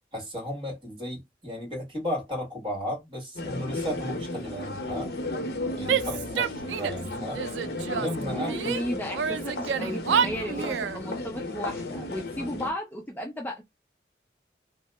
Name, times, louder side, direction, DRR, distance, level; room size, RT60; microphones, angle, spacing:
voice 1, 0.1-5.1 5.7-7.4 7.9-8.7, equal, 30° right, 1.4 m, -34 dB
sound 1, 3.3-12.7, left 2 dB, 65° left, 0.7 m, -34 dB
Female speech woman speaking / Yell, 5.9-7.1 7.3-8.8 9.1-11.0, right 7 dB, 90° right, 0.3 m, -28 dB
voice 2, 8.2-13.6, equal, 10° left, 0.4 m, -35 dB
2.8 x 2.0 x 3.3 m
head